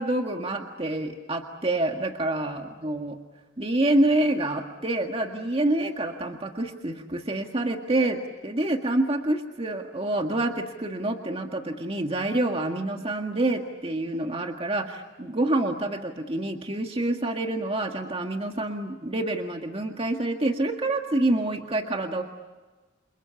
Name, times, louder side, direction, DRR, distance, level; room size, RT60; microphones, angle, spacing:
voice 1, 0.0-3.2 3.6-22.2, right 1 dB, 30° right, 3 dB, 1.9 m, -27 dB
29.5 x 28.0 x 7.1 m, 1.2 s
head